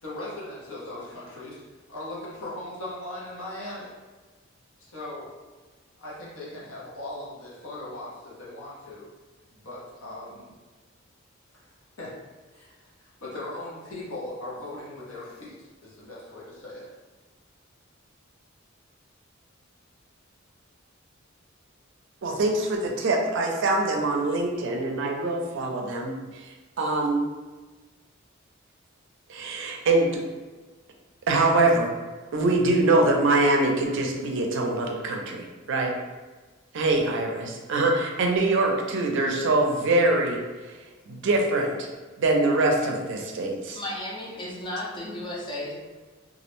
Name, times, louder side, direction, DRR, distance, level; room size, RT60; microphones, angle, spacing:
voice 1, 0.0-4.0 4.8-5.3 6.0-9.1 9.5-10.5 11.5-11.7 12.0-12.1 12.5-16.9, left 1 dB, 90° left, -6 dB, 0.7 m, -39 dB
voice 2, 22.2-26.1 26.8-27.3 29.3-30.2 31.3-31.9 32.3-35.9 36.7-40.4 41.1-41.9 42.2-43.8, right 2 dB, 60° right, 1 dB, 0.4 m, -23 dB
voice 3, 43.8-45.7, left 1 dB, 25° left, -3 dB, 0.4 m, -34 dB
2.4 x 2.0 x 2.9 m, 1.3 s
head